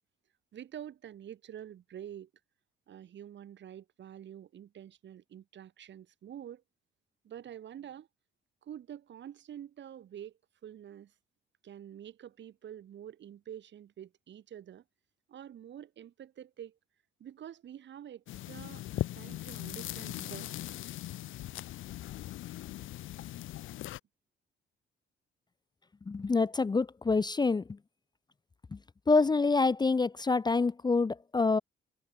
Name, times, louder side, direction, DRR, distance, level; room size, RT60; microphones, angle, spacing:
voice 1, 0.5-2.3 2.9-6.6 7.2-8.1 8.6-10.3 10.6-11.1 11.6-14.8 15.3-16.8 17.2-20.6, right 10 dB, 65° right, 6.2 m, -47 dB
sound 1, 18.3-24.0, left 15 dB, 85° left, 5.3 m, -39 dB
voice 2, 26.1-27.8 28.7-28.8 29.1-31.6, left 4 dB, 20° left, 0.6 m, -27 dB
cardioid pair, 90°, 20 cm